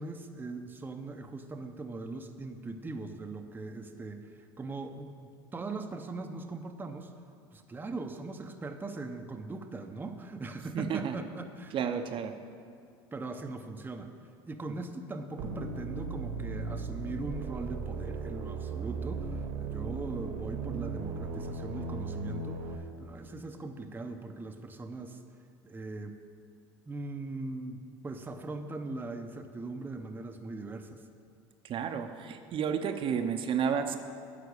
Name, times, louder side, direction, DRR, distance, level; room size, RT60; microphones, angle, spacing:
voice 1, 0.0-5.1 5.5-7.1 7.5-11.8 13.1-14.1 14.4-25.2 25.6-26.2 26.9-31.0, right 3 dB, 15° right, 5 dB, 0.7 m, -40 dB
voice 2, 10.7-11.1 11.7-12.4 31.6-34.0, right 7 dB, 45° right, 7 dB, 0.8 m, -31 dB
sound 1, 15.4-22.8, right 4 dB, 65° right, 1.3 m, -37 dB
9.9 x 5.9 x 8.2 m, 2.3 s
supercardioid pair, 95°, 12 cm